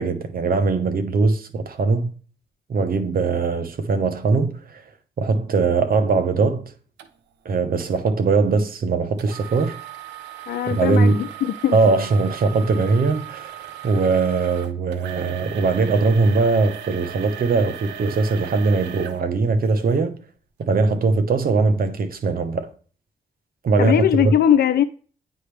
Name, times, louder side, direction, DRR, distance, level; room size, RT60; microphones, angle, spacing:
voice 1, 0.0-2.1 2.7-4.8 5.2-6.7 7.4-9.8 10.7-11.2 11.7-20.1 20.6-22.7 23.6-24.3, right 4 dB, 55° right, 0.9 m, -21 dB
sound 1, 7.0-7.1 7.8-8.0 9.2-20.0 20.6-20.7 21.3-21.4, right 10 dB, 85° right, 0.6 m, -38 dB
voice 2, 10.5-11.8 23.8-24.8, left 10 dB, 65° left, 0.4 m, -20 dB
9.2 x 3.5 x 3.4 m
hypercardioid pair, 45°, 18 cm